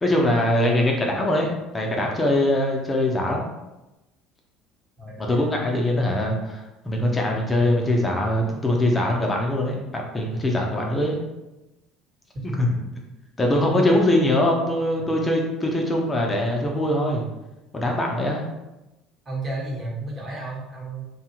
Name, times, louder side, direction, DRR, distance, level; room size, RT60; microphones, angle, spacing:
voice 1, 0.0-3.4 5.2-11.2 12.6-12.7 13.4-17.2 17.7-18.4, left 1 dB, 20° left, 0 dB, 0.7 m, -22 dB
voice 2, 5.0-5.5 12.8-12.9 13.7-13.9 19.2-21.0, right 1 dB, 30° right, -4 dB, 1.2 m, -33 dB
2.8 x 2.4 x 2.9 m, 0.98 s
hypercardioid pair, 65°, 0 cm